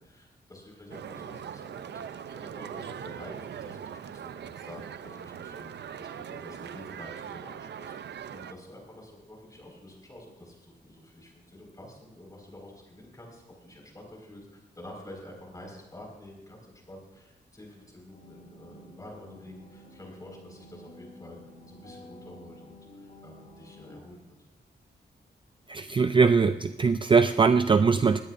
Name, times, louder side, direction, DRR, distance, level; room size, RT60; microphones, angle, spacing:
voice 1, 0.0-21.4 21.7-24.3, left 1 dB, 20° left, 0 dB, 5.0 m, -48 dB
sound 1, 0.9-8.5, right 8 dB, 75° right, 0.6 m, -41 dB
sound 2, 18.1-24.0, left 1 dB, 45° left, 3.2 m, -51 dB
voice 2, 25.7-28.2, right 5 dB, 30° right, 10 dB, 0.4 m, -21 dB
21.0 x 16.5 x 2.6 m, 1.0 s
wide cardioid pair, 135°, 18 cm